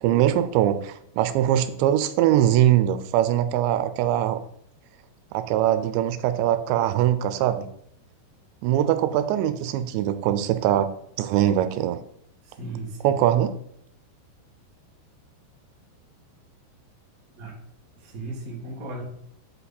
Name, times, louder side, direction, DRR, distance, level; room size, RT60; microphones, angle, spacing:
voice 1, 0.0-4.4 5.3-7.7 8.6-10.9 11.2-12.0 13.0-13.5, right 12 dB, 85° right, 11 dB, 2.8 m, -22 dB
voice 2, 12.4-13.2 17.4-17.5 17.9-19.0, right 2 dB, 65° right, -2 dB, 0.8 m, -36 dB
8.1 x 5.7 x 4.1 m, 0.71 s
omnidirectional pair, 5.0 m